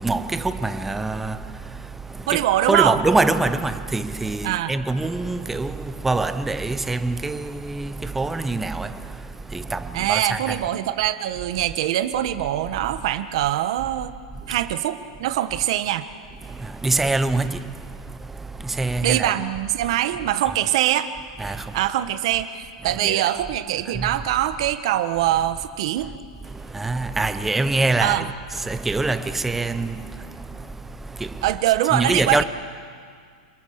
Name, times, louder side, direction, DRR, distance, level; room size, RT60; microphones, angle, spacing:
voice 1, 0.0-10.6 14.4-14.6 16.4-19.3 19.8-19.9 20.5-20.6 21.4-21.8 22.8-23.3 23.9-24.2 26.0-26.1 26.4-31.5 31.9-32.4, right 3 dB, 5° right, 0.6 m, -25 dB
voice 2, 2.3-3.0 4.4-4.7 9.9-14.1 14.5-16.1 19.0-21.1 21.7-26.1 28.0-28.3 31.4-32.4, right 13 dB, 55° right, 1.2 m, -23 dB
27.5 x 22.0 x 6.6 m
supercardioid pair, 165°, 4 cm